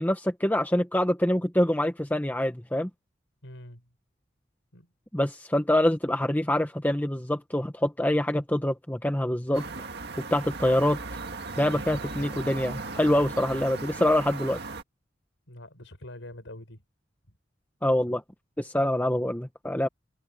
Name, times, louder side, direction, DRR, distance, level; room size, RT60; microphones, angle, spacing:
voice 1, 0.0-2.9 5.1-9.7 10.2-11.0 11.6-14.6 17.8-18.2 18.6-19.9, left 1 dB, 10° left, 1.2 m, -25 dB
voice 2, 3.4-3.9 4.7-4.9 15.5-16.8, left 1 dB, 70° left, 6.6 m, -44 dB
sound 1, 9.5-14.8, right 3 dB, 55° right, 1.9 m, -37 dB
head